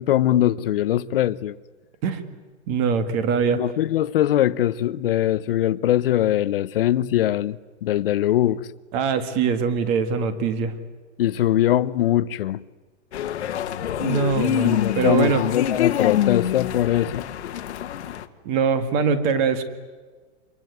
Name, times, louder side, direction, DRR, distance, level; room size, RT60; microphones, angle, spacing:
voice 1, 0.0-1.6 3.5-8.7 11.2-12.6 14.6-17.3, left 12 dB, 55° left, 0.9 m, -21 dB
voice 2, 2.7-3.6 8.9-10.7 14.0-15.4 18.4-19.6, right 6 dB, 25° right, 1.7 m, -22 dB
sound 1, 13.1-18.2, left 11 dB, 75° left, 1.8 m, -26 dB
26.5 x 23.0 x 9.4 m
supercardioid pair, 175°, 34 cm